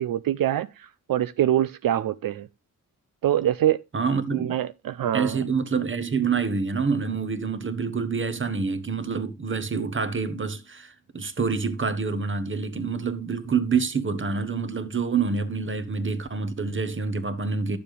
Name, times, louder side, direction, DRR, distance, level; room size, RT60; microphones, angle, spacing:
voice 1, 0.0-2.5 3.2-3.8 4.3-5.4, right 12 dB, 75° right, 0.5 m, -24 dB
voice 2, 3.9-4.5 5.1-17.8, right 5 dB, 35° right, 1.2 m, -27 dB
12.0 x 7.0 x 3.3 m
wide cardioid pair, 105°, 34 cm